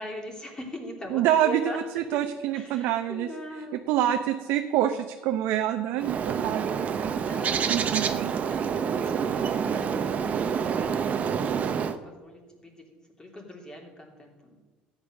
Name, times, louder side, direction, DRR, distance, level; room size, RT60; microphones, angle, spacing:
voice 1, 0.0-2.2 2.5-4.1 7.3-14.6, left 1 dB, 20° left, 1 dB, 3.1 m, -41 dB
voice 2, 1.1-3.3 3.9-7.2 7.7-8.3, right 11 dB, 70° right, 6 dB, 0.8 m, -26 dB
Bird, 6.0-12.0, right 7 dB, 40° right, 0.9 m, -27 dB
13.0 x 9.0 x 6.4 m, 1.2 s
supercardioid pair, 100°, 4 cm